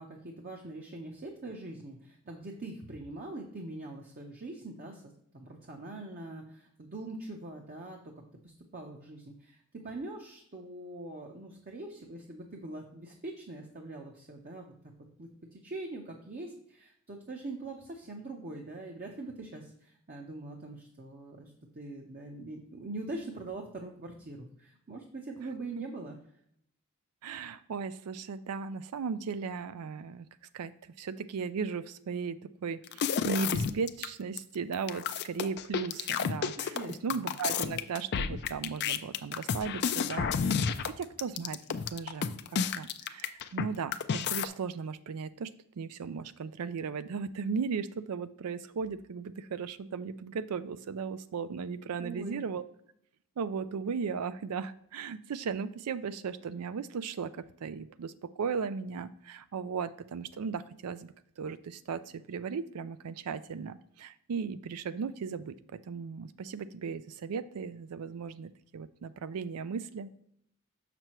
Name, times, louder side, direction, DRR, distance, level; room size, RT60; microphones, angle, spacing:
voice 1, 0.0-8.1 8.4-14.7 15.2-26.2 36.6-37.3 52.0-52.4, right 2 dB, 40° right, 1 dB, 0.7 m, -43 dB
voice 2, 27.2-30.3 30.5-30.7 31.0-36.8 37.0-41.6 41.9-42.4 42.7-45.5 45.8-52.6 53.4-57.3 57.6-65.6 65.9-70.1, right 5 dB, 85° right, 14 dB, 0.4 m, -36 dB
sound 1, 32.9-34.1 34.4-34.5 34.7-43.7 43.9-44.5, left 6 dB, 50° left, 0.4 m, -31 dB
6.6 x 6.0 x 3.0 m, 0.70 s
head